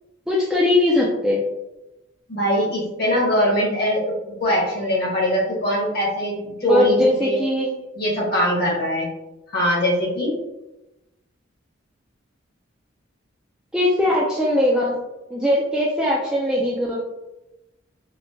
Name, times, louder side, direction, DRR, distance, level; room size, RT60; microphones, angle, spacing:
voice 1, 0.3-1.4 6.7-7.7 13.7-15.0 15.3-17.0, left 1 dB, 5° right, -5 dB, 0.3 m, -20 dB
voice 2, 2.3-4.1 4.4-7.4 8.0-9.1 9.5-10.3, equal, 50° left, -4 dB, 1.1 m, -22 dB
4.3 x 2.1 x 2.6 m, 0.97 s
head